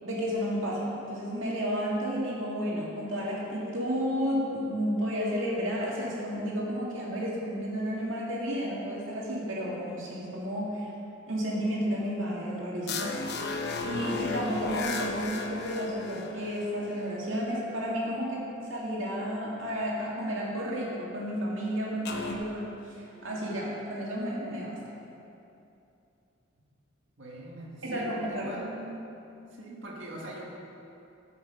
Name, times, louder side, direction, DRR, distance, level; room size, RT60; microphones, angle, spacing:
voice 1, 0.0-10.9 11.3-13.1 13.4-22.7 22.9-24.8 27.8-28.5, equal, 90° right, -4 dB, 2.1 m, -32 dB
sound 1, 12.9-17.3 22.0-22.4, left 4 dB, 60° left, 0.8 m, -35 dB
voice 2, 27.2-29.0 29.6-30.4, right 1 dB, 70° right, -4 dB, 1.9 m, -42 dB
13.0 x 5.8 x 5.4 m, 2.7 s
head